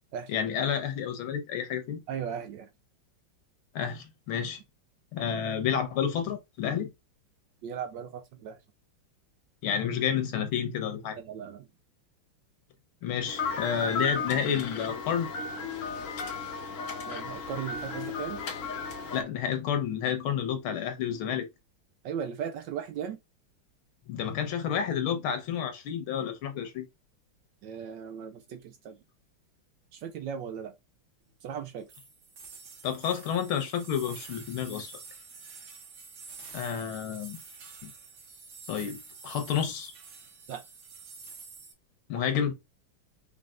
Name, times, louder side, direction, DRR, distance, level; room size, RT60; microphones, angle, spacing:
voice 1, 0.3-2.0 3.8-4.6 5.1-6.9 9.6-11.2 13.0-15.3 19.1-21.5 24.1-26.9 32.8-35.0 36.5-37.4 37.8-37.9 38.7-39.9 42.1-42.6, left 8 dB, 85° left, 1.8 m, -30 dB
voice 2, 2.1-2.7 7.6-8.6 11.2-11.7 17.1-18.4 22.0-23.2 27.6-29.0 29.9-30.7 31.4-31.9 40.5-40.6, right 8 dB, 75° right, 1.1 m, -37 dB
sound 1, 13.3-19.2, left 4 dB, 55° left, 0.9 m, -35 dB
sound 2, 31.9-41.7, right 4 dB, 55° right, 1.7 m, -48 dB
5.4 x 3.4 x 2.5 m
omnidirectional pair, 2.3 m